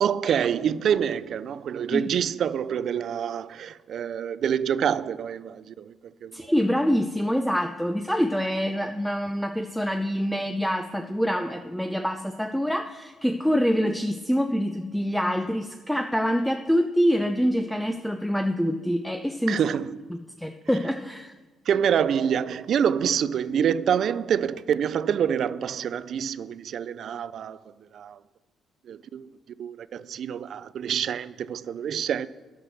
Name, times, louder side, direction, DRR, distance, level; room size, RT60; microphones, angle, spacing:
voice 1, 0.0-6.5 19.5-20.1 21.7-28.2 28.8-29.3 29.6-32.3, right 8 dB, 65° right, 0.3 m, -26 dB
voice 2, 6.3-19.6 20.4-21.3, equal, ahead, 0.4 m, -25 dB
10.0 x 6.0 x 6.3 m
cardioid pair, 90°, 0 cm